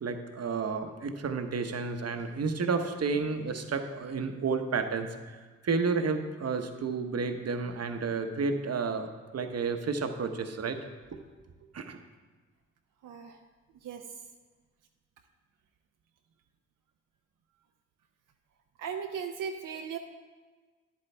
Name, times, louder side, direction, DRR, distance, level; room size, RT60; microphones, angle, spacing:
voice 1, 0.0-5.4 5.6-10.8 11.1-11.2 11.7-12.0, right 4 dB, 55° right, 6 dB, 0.9 m, -31 dB
voice 2, 13.0-13.4 13.8-14.0 18.8-20.0, right 7 dB, 85° right, 4 dB, 0.6 m, -37 dB
10.0 x 8.4 x 3.3 m, 1.4 s
cardioid pair, 55°, 31 cm